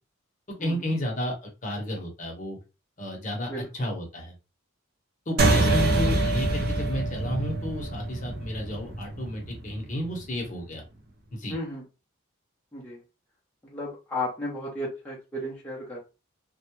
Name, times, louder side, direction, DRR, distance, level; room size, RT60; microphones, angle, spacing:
voice 1, 0.6-2.6 3.0-4.3 5.3-10.8 11.3-11.6, equal, 35° left, 0 dB, 0.8 m, -32 dB
sound 1, 5.4-10.2, right 2 dB, 45° right, 0.5 m, -25 dB
voice 2, 11.5-11.8 12.7-13.0 13.7-16.0, left 1 dB, 5° left, -6 dB, 0.5 m, -33 dB
2.2 x 2.0 x 2.9 m, 0.29 s
head